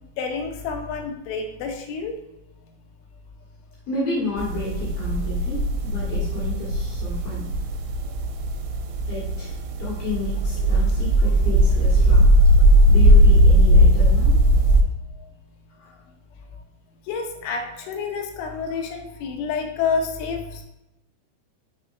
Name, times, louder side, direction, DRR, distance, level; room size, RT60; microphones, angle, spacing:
voice 1, 0.2-2.1 8.1-8.2 10.6-10.9 17.1-20.6, left 5 dB, 80° left, 4 dB, 3.1 m, -29 dB
voice 2, 3.9-7.5 9.1-12.3 12.9-14.3 15.8-15.9, left 3 dB, 60° left, -6 dB, 2.8 m, -31 dB
sound 1, 4.4-14.8, equal, 85° right, 3.2 m, -18 dB
6.6 x 6.6 x 2.5 m, 0.88 s
omnidirectional pair, 5.6 m